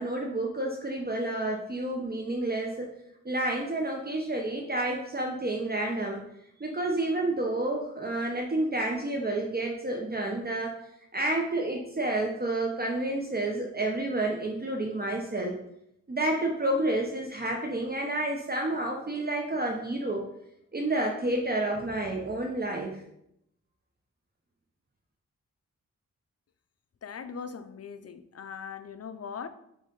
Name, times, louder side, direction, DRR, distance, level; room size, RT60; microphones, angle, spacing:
voice 1, 0.0-2.9 3.2-6.2 6.6-10.8 11.1-15.6 16.1-20.2 20.7-23.0, right 1 dB, 30° right, 0 dB, 0.9 m, -30 dB
voice 2, 27.0-29.5, left 6 dB, 55° left, 10 dB, 0.6 m, -40 dB
6.5 x 3.2 x 5.3 m, 0.77 s
wide cardioid pair, 75°, 31 cm